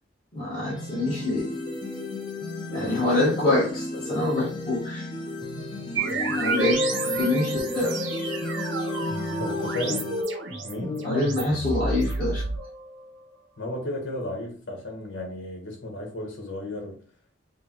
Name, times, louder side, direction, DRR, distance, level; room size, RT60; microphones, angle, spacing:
voice 1, 0.3-1.5 2.7-5.1 6.2-6.8 7.1-8.0 11.0-12.4, left 2 dB, 50° left, 1.7 m, -25 dB
sound 1, 0.6-10.2, left 2 dB, 25° left, 0.8 m, -33 dB
sound 2, 6.0-13.1, right 2 dB, 80° right, 1.0 m, -30 dB
voice 2, 9.4-10.1 10.6-11.2 13.6-17.0, left 2 dB, 80° left, 1.5 m, -33 dB
6.5 x 2.3 x 3.0 m
head